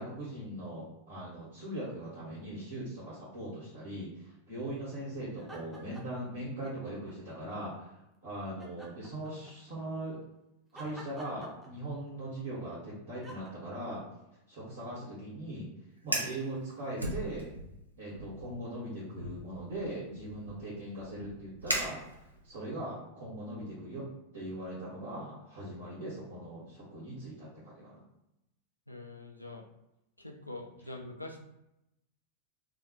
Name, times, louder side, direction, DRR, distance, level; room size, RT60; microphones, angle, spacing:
voice 1, 0.0-10.2 10.7-14.0 14.5-15.7 16.0-17.5 18.0-22.1 22.4-24.0 24.3-28.0, right 1 dB, 60° right, -8 dB, 1.0 m, -40 dB
sound 1, 5.4-6.2 6.6-7.6 8.6-9.7 10.8-12.1 13.2-13.5, right 1 dB, 10° right, 0.5 m, -50 dB
Fire, 16.0-16.4 17.0-17.8 18.1-18.5 19.2-22.5, right 1 dB, 85° right, 0.4 m, -37 dB
voice 2, 28.9-29.6 30.2-31.4, left 2 dB, 85° left, 2 dB, 0.3 m, -44 dB
2.4 x 2.0 x 2.7 m, 0.87 s
figure-of-eight pair, 90°, 0 cm